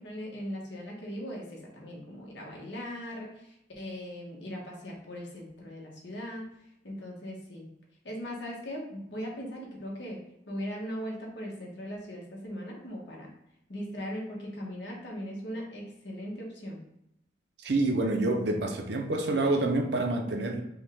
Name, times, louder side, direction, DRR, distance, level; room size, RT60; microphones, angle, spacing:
voice 1, 0.0-6.5 6.8-7.7 8.0-10.2 10.5-13.3 13.7-16.8, equal, 75° left, -2 dB, 1.2 m, -39 dB
voice 2, 17.6-20.6, right 2 dB, 65° right, 4 dB, 0.6 m, -27 dB
5.3 x 2.3 x 3.5 m, 0.82 s
head